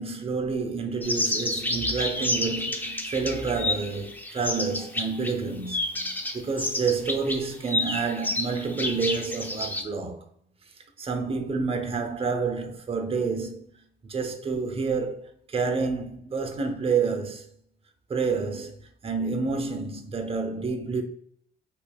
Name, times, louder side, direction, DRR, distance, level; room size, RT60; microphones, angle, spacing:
voice 1, 0.0-10.3 11.0-13.7 14.0-17.5 18.1-21.0, right 4 dB, 30° right, 0.7 m, -29 dB
sound 1, 1.0-5.3 5.7-9.8, left 1 dB, 10° left, 0.5 m, -30 dB
4.4 x 3.0 x 2.3 m
cardioid pair, 90°, 20 cm